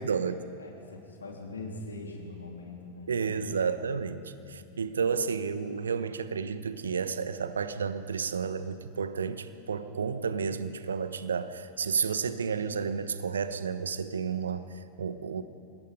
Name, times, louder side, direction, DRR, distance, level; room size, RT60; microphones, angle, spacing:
voice 1, 0.0-0.4 3.1-15.4, right 6 dB, 70° right, 12 dB, 1.0 m, -31 dB
voice 2, 0.6-3.4 4.4-4.7, left 2 dB, 75° left, 1 dB, 3.2 m, -42 dB
26.5 x 21.0 x 5.3 m, 2.5 s
figure-of-eight pair, 90°, 0 cm